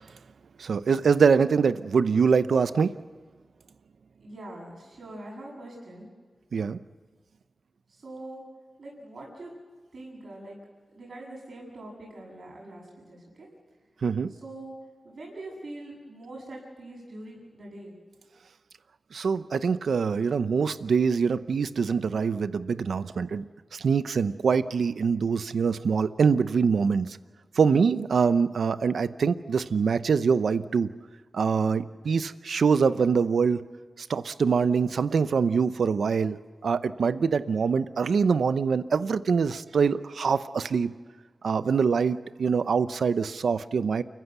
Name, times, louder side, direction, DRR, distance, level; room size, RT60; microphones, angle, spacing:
voice 1, 0.6-2.9 6.5-6.8 14.0-14.3 19.1-23.4 23.7-27.2 27.6-30.9 31.3-33.6 34.0-40.9 41.4-44.0, right 5 dB, 90° right, 13 dB, 0.7 m, -24 dB
voice 2, 4.2-6.1 7.9-8.4 8.8-9.5 9.9-10.6 10.9-13.5 14.3-14.7 15.0-17.9, right 1 dB, 65° right, -3 dB, 8.0 m, -43 dB
29.5 x 15.5 x 8.1 m, 1.4 s
wide cardioid pair, 80°, 0 cm